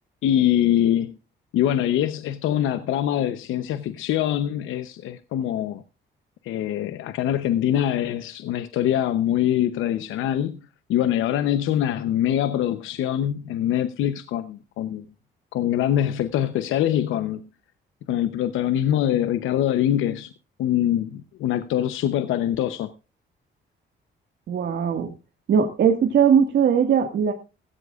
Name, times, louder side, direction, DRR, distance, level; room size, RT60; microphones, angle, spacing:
voice 1, 0.2-1.2 1.5-5.8 6.4-10.6 10.9-15.0 15.5-17.4 18.1-20.3 20.6-22.9, left 11 dB, 85° left, 0.8 m, -23 dB
voice 2, 24.5-25.1 25.5-27.3, right 7 dB, 60° right, 1.8 m, -19 dB
16.5 x 15.0 x 2.4 m
cardioid pair, 90°, 20 cm